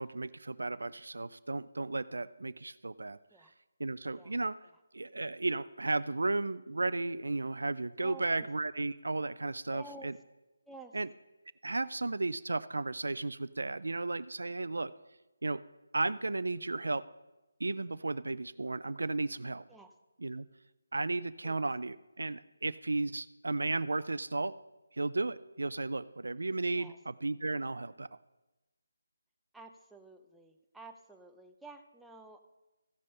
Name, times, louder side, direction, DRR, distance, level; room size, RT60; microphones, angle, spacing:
voice 1, 0.0-3.2 3.8-4.6 4.9-10.2 10.9-11.1 11.6-14.9 15.4-15.6 15.9-17.0 17.6-19.6 20.2-20.5 20.9-24.5 24.9-28.1, right 2 dB, 80° right, 15 dB, 0.4 m, -34 dB
voice 2, 8.0-8.5 9.7-10.2 10.7-11.0 19.7-19.9 21.4-21.7 26.7-27.0 29.5-32.4, right 3 dB, 5° right, 3 dB, 0.6 m, -51 dB
15.0 x 5.3 x 5.5 m, 1.1 s
figure-of-eight pair, 160°, 0 cm